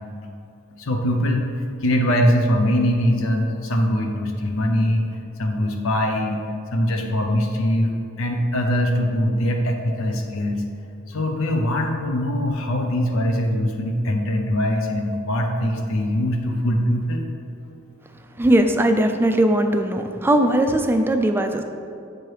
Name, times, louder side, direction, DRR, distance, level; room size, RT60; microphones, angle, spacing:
voice 1, 0.8-1.4 1.8-5.1 5.4-6.4 6.7-10.6 11.1-17.2, equal, 70° left, 3 dB, 0.6 m, -22 dB
voice 2, 18.4-21.6, right 1 dB, 10° right, 6 dB, 0.3 m, -19 dB
7.6 x 3.3 x 4.6 m, 2.6 s
head